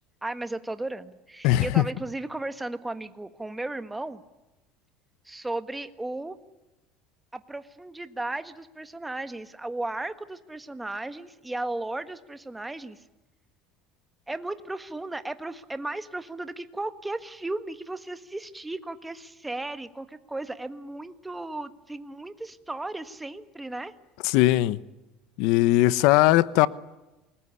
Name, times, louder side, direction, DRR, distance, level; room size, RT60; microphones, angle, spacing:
voice 1, 0.2-4.2 5.2-6.4 7.3-13.0 14.3-23.9, right 2 dB, 5° right, 1.4 m, -35 dB
voice 2, 1.4-1.8 24.2-24.8 25.4-26.7, left 16 dB, 70° left, 1.0 m, -19 dB
28.0 x 20.5 x 9.8 m
cardioid pair, 145°, 0 cm